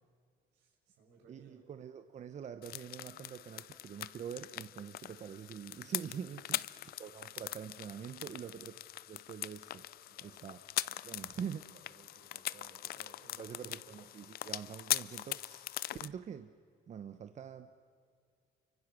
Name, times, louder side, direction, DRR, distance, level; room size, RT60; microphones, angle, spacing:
voice 1, 0.5-1.6 6.7-6.9 8.4-8.5 10.1-10.6 11.9-14.4, right 5 dB, 85° right, 1 dB, 6.7 m, -61 dB
voice 2, 1.3-8.7 9.1-9.8 10.2-11.7 13.4-16.5 16.9-17.7, right 8 dB, 45° right, 9 dB, 1.0 m, -45 dB
sound 1, 2.6-16.1, left 14 dB, 65° left, 0.6 m, -41 dB
29.0 x 24.5 x 6.3 m, 2.2 s
cardioid pair, 110°, 17 cm